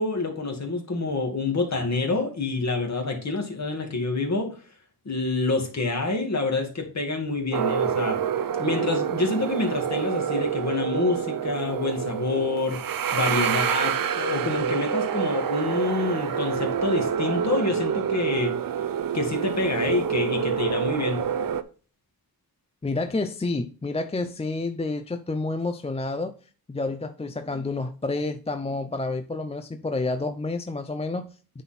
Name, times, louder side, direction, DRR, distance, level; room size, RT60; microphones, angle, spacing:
voice 1, 0.0-4.5 5.1-8.2 8.6-12.8 13.1-18.5 19.1-21.2, left 3 dB, 45° left, 2 dB, 2.1 m, -27 dB
sound 1, 7.5-21.6, right 8 dB, 60° right, 0.6 m, -27 dB
voice 2, 22.8-26.3 26.7-31.6, left 3 dB, 15° left, 7 dB, 0.5 m, -29 dB
9.1 x 4.1 x 4.2 m, 0.38 s
wide cardioid pair, 95°, 38 cm